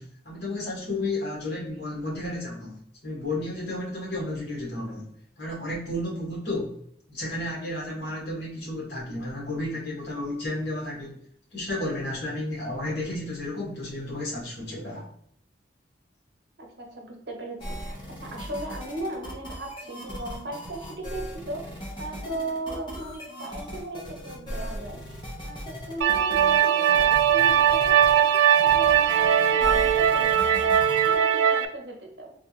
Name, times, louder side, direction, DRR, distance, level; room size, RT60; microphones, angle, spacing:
voice 1, 0.0-2.7 3.0-5.1 5.4-6.8 7.1-11.2 11.5-15.0, left 1 dB, 65° left, -4 dB, 1.5 m, -32 dB
voice 2, 16.6-30.7 31.0-32.3, right 1 dB, 60° right, 1 dB, 0.8 m, -37 dB
sound 1, 17.6-31.1, equal, 25° left, 0.8 m, -38 dB
sound 2, 26.0-31.7, right 9 dB, 80° right, 0.3 m, -20 dB
3.5 x 2.4 x 2.8 m, 0.68 s
head